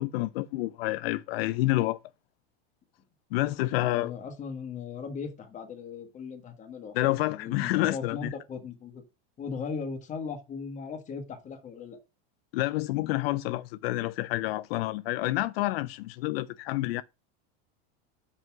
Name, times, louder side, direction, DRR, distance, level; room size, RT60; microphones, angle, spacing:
voice 1, 0.0-2.0 3.3-4.1 6.9-8.3 12.5-17.0, left 17 dB, 75° left, 0.5 m, -28 dB
voice 2, 3.8-9.0 9.4-12.0, left 5 dB, 25° left, 1.6 m, -38 dB
5.6 x 5.4 x 6.0 m
supercardioid pair, 150°, 30 cm